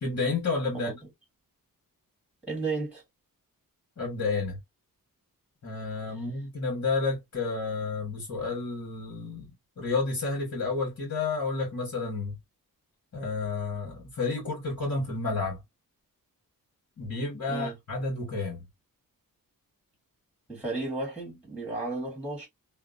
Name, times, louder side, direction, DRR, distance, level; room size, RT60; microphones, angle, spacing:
voice 1, 0.0-0.9 4.0-4.6 5.6-9.5 9.8-12.4 13.1-15.6 17.0-18.7, left 3 dB, 50° left, 1.3 m, -30 dB
voice 2, 2.5-3.0 6.1-6.2 17.5-17.8 20.5-22.5, right 3 dB, 5° right, 1.5 m, -33 dB
2.7 x 2.1 x 2.4 m
wide cardioid pair, 110°, 35 cm